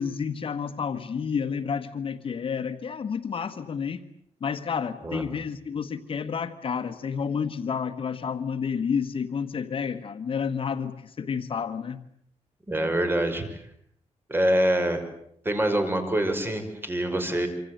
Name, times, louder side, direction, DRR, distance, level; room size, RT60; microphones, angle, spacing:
voice 1, 0.0-4.0 4.4-12.0, left 6 dB, 50° left, 1.5 m, -30 dB
voice 2, 12.7-13.6 14.3-15.0 15.4-17.5, right 1 dB, 20° right, 5.6 m, -25 dB
26.5 x 26.0 x 8.1 m
wide cardioid pair, 120°, 12 cm